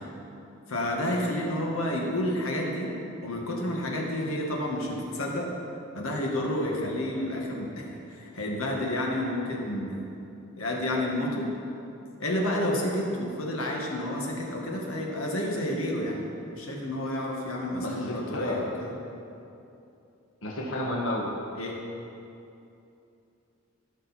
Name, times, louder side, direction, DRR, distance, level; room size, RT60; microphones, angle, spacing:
voice 1, 0.7-2.9 3.2-5.5 5.9-7.8 8.1-10.1 10.6-11.5 12.2-16.3 16.6-18.9 21.6-21.8, left 1 dB, 90° left, -1 dB, 1.9 m, -30 dB
voice 2, 17.7-18.7 20.4-21.3, left 1 dB, 70° left, -2 dB, 1.4 m, -31 dB
16.5 x 6.4 x 4.4 m, 2.7 s
head